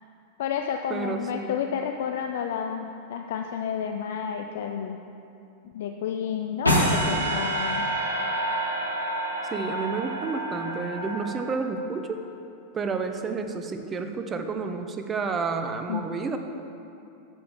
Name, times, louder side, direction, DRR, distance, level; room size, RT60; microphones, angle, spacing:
voice 1, 0.4-5.0 5.7-7.9 15.9-16.1, left 8 dB, 55° left, 5 dB, 0.3 m, -30 dB
voice 2, 0.9-1.6 9.5-12.2 12.7-16.4, right 4 dB, 20° right, 6 dB, 0.6 m, -30 dB
sound 1, 6.6-11.9, right 1 dB, 85° left, 1.0 m, -27 dB
9.4 x 6.7 x 3.6 m, 2.7 s
figure-of-eight pair, 90°, 0 cm